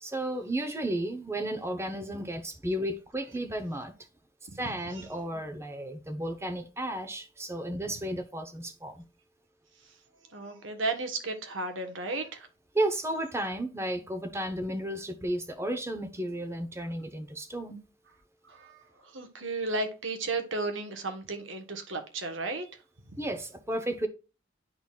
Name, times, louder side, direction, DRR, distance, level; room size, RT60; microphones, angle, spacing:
voice 1, 0.0-3.9 4.5-9.0 12.7-17.8 23.2-24.1, right 1 dB, 15° right, 0.8 m, -33 dB
voice 2, 10.3-12.5 18.4-22.7 23.1-23.2, right 3 dB, 70° right, 1.3 m, -34 dB
10.5 x 4.0 x 2.4 m
head